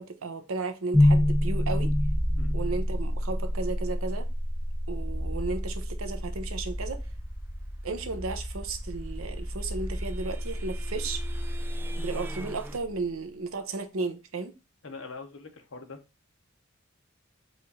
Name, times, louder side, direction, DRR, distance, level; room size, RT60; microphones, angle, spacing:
voice 1, 0.0-1.9 2.5-4.3 4.9-7.0 7.8-11.2 12.0-14.5, right 3 dB, 80° right, 0.7 m, -34 dB
sound 1, 0.9-13.0, left 1 dB, 5° left, 0.8 m, -29 dB
sound 2, 8.9-12.8, right 1 dB, 10° right, 0.4 m, -45 dB
voice 2, 14.8-16.0, left 4 dB, 65° left, 0.9 m, -43 dB
4.7 x 2.5 x 4.0 m
head